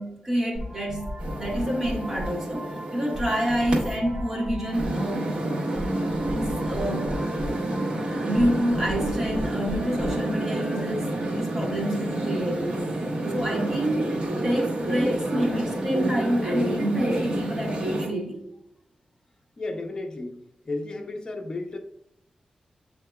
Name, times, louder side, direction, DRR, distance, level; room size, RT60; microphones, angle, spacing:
voice 1, 0.0-5.6 5.9-7.1 8.0-12.8 13.2-18.4, equal, 20° right, -2 dB, 1.4 m, -28 dB
sound 1, 0.5-11.0, equal, 75° right, 0.9 m, -37 dB
sound 2, 1.2-4.0 4.7-18.1, right 1 dB, 45° right, 1.4 m, -29 dB
voice 2, 19.6-21.8, left 2 dB, 35° left, 3 dB, 0.7 m, -33 dB
7.6 x 2.9 x 2.3 m, 0.76 s
wide cardioid pair, 130°, 2 cm